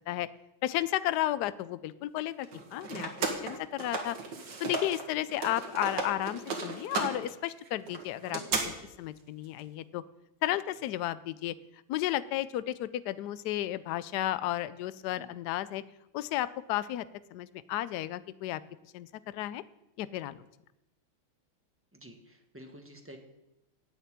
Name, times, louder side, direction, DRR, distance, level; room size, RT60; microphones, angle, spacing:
voice 1, 0.6-4.2 4.6-8.7 9.0-10.0 10.4-11.5 11.9-15.8 16.1-17.0 17.3-18.6 18.9-19.6 20.0-20.5, left 14 dB, 75° left, 16 dB, 1.0 m, -33 dB
sound 1, 2.4-5.0 5.3-8.6, right 4 dB, 60° right, 2.0 m, -35 dB
voice 2, 21.9-23.2, right 1 dB, 10° right, 3 dB, 1.0 m, -50 dB
10.5 x 6.9 x 8.7 m, 0.91 s
omnidirectional pair, 2.2 m